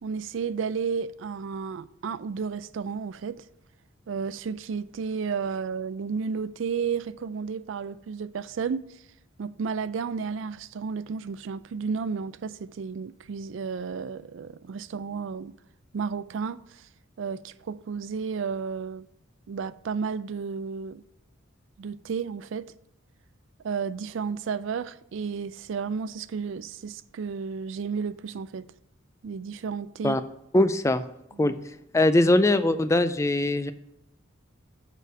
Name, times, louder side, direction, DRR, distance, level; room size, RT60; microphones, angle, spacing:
voice 1, 0.0-3.4 4.1-9.0 9.4-15.6 15.9-16.9 17.2-19.1 19.5-21.0 21.8-22.7 23.6-28.7 29.2-30.2 31.3-31.5, right 5 dB, 65° right, 0.4 m, -32 dB
voice 2, 30.5-31.0 31.4-31.6 31.9-33.7, left 2 dB, 15° left, 0.4 m, -21 dB
6.7 x 5.0 x 6.2 m
head